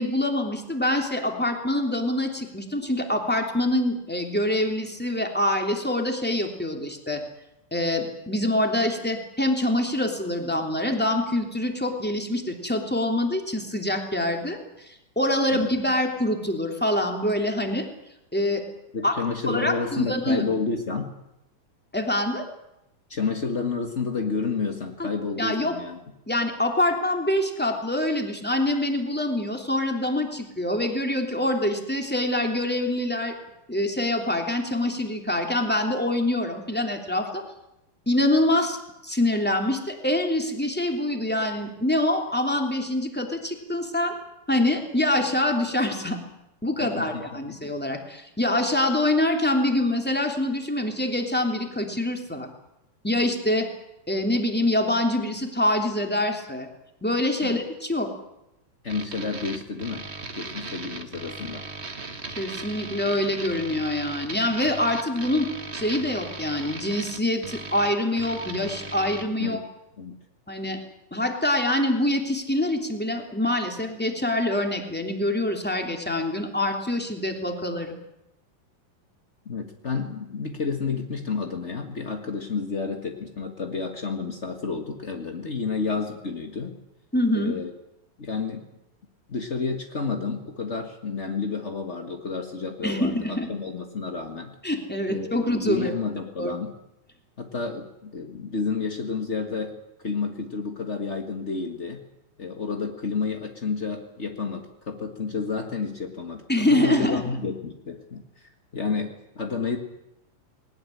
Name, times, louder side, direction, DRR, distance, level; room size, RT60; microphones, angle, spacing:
voice 1, 0.0-7.2 7.7-17.9 18.3-18.6 19.0-19.2 19.5-20.4 21.9-22.4 25.0-25.1 25.4-25.8 26.3-33.3 33.7-37.4 38.1-38.8 39.0-44.1 44.5-46.2 46.6-52.5 53.0-53.7 54.1-56.7 57.0-58.1 62.4-69.6 70.5-70.8 71.1-77.9 87.1-87.5 92.8-93.5 94.6-95.9 96.4-96.5 106.5-107.2, left 1 dB, 5° left, 3 dB, 2.4 m, -25 dB
voice 2, 18.9-21.1 23.1-26.0 46.8-47.6 57.4-57.6 58.8-60.1 60.3-61.6 69.4-69.6 70.0-70.2 79.4-86.8 87.3-87.7 88.2-88.6 89.3-94.5 95.1-96.7 97.4-102.0 102.4-109.8, left 4 dB, 60° left, 4 dB, 0.7 m, -30 dB
sound 1, 58.9-69.3, right 3 dB, 40° right, 0.8 m, -37 dB
20.5 x 19.0 x 10.0 m, 0.88 s
omnidirectional pair, 4.1 m